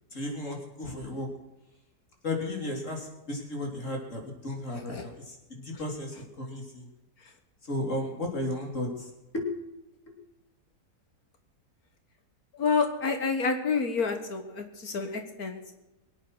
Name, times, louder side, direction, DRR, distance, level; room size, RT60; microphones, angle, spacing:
voice 1, 0.1-1.3 2.2-6.9 7.6-9.5, left 1 dB, 50° left, 1 dB, 3.7 m, -34 dB
voice 2, 12.6-15.7, left 5 dB, 65° left, 6 dB, 1.8 m, -29 dB
23.5 x 8.6 x 6.2 m, 0.99 s
omnidirectional pair, 1.7 m